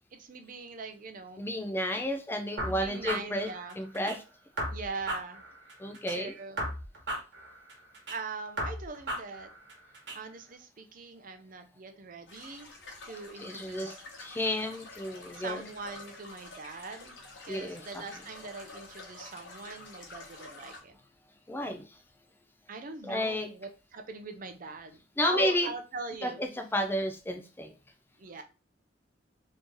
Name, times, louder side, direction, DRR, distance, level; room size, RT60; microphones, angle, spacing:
voice 1, 0.1-1.4 2.7-3.8 4.7-5.4 6.1-6.7 8.1-9.5 10.1-12.7 13.0-14.0 15.3-17.2 17.4-21.0 22.7-26.4 28.2-28.4, right 4 dB, 45° right, 7 dB, 0.5 m, -41 dB
voice 2, 1.4-3.5 3.8-4.2 5.8-6.3 13.4-13.9 14.2-15.6 17.5-18.0 21.5-21.8 23.0-23.5 25.2-25.7 26.2-27.7, left 1 dB, 10° left, 5 dB, 0.4 m, -31 dB
sound 1, 2.6-4.2 4.6-6.2 6.6-8.2 8.6-10.2, right 1 dB, 60° right, 1.3 m, -36 dB
sound 2, 12.3-20.8, left 2 dB, 75° left, 1.1 m, -48 dB
3.1 x 2.7 x 3.5 m, 0.32 s
head